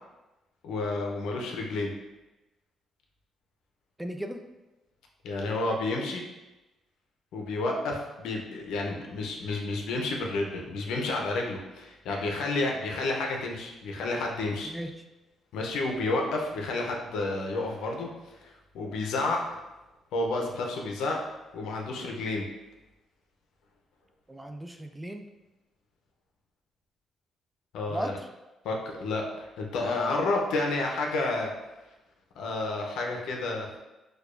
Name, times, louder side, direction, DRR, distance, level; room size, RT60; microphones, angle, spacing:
voice 1, 0.6-1.9 5.2-6.2 7.3-14.7 15.5-19.4 20.1-21.2 21.5-22.4 27.7-28.1 28.6-31.5 32.4-33.8, left 2 dB, 85° left, 1 dB, 0.6 m, -30 dB
voice 2, 4.0-4.4 14.7-14.9 24.3-25.3 27.9-28.3, right 1 dB, 10° right, 6 dB, 0.3 m, -36 dB
4.6 x 2.3 x 2.5 m, 1.0 s
cardioid pair, 90°, 0 cm